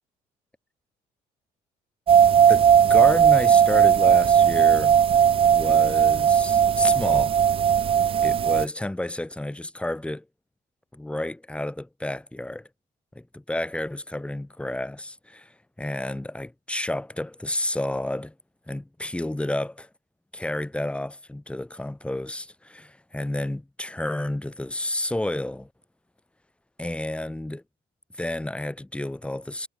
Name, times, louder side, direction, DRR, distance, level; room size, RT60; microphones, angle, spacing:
sound 1, 2.1-8.6, right 8 dB, 35° right, 0.4 m, -18 dB
voice 1, 2.5-5.0 5.5-7.4 8.2-10.2 10.9-12.7 13.1-18.3 18.7-19.9 20.3-25.7 26.8-27.6 28.1-29.7, left 1 dB, 5° left, 2.0 m, -30 dB
cardioid pair, 110°, 17 cm